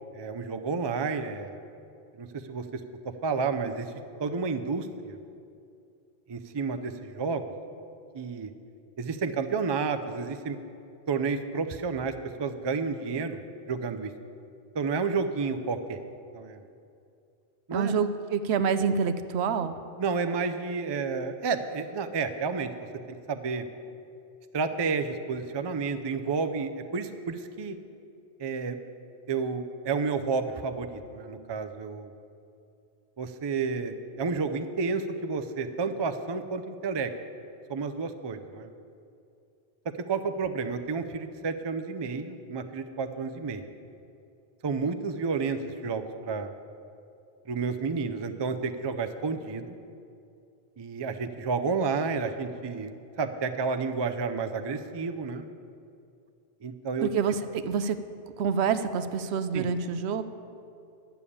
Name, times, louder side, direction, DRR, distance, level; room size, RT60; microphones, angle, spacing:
voice 1, 0.1-1.6 2.2-2.8 3.2-3.9 4.2-5.2 6.3-7.4 8.1-8.5 9.0-10.6 11.1-12.1 12.4-13.4 13.7-14.1 14.7-16.0 16.3-16.6 17.7-17.9 20.0-22.9 23.3-23.6 24.5-27.8 28.4-28.8 29.3-32.1 33.2-37.1 37.7-38.7 40.1-43.6 44.6-46.5 47.5-49.8 50.8-55.5 56.6-57.1 59.5-59.7, right 4 dB, 35° right, 8 dB, 0.4 m, -30 dB
voice 2, 17.7-19.8 57.0-58.0 58.4-60.2, right 6 dB, 90° right, 11 dB, 0.9 m, -27 dB
11.0 x 7.0 x 8.5 m, 2.5 s
omnidirectional pair, 1.1 m